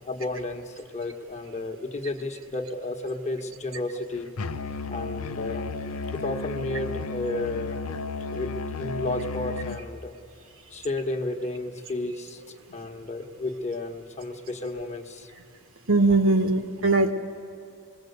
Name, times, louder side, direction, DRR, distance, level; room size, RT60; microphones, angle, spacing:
voice 1, 0.0-4.3 4.9-5.7 6.1-7.8 8.3-10.1 10.7-15.3, left 2 dB, 30° left, 4 dB, 1.3 m, -32 dB
Musical instrument, 4.4-9.9, left 3 dB, 80° left, 0.8 m, -33 dB
voice 2, 15.9-17.1, right 2 dB, 65° right, 7 dB, 1.5 m, -20 dB
26.0 x 21.0 x 8.1 m, 2.6 s
head